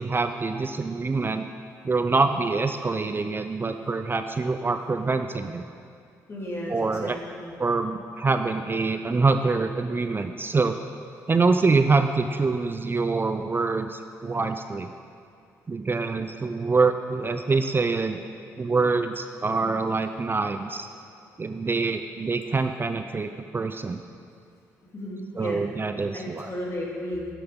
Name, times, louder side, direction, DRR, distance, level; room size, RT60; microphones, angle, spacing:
voice 1, 0.0-1.4 1.8-5.6 6.7-7.2 7.6-10.8 11.3-14.9 15.7-18.2 18.6-20.9 21.4-24.0 25.4-26.5, right 4 dB, 30° right, 8 dB, 0.5 m, -25 dB
voice 2, 6.3-7.5 24.9-25.7 26.1-27.3, left 1 dB, 35° left, -3 dB, 2.9 m, -34 dB
11.0 x 7.8 x 5.3 m, 2.4 s
hypercardioid pair, 55°, 8 cm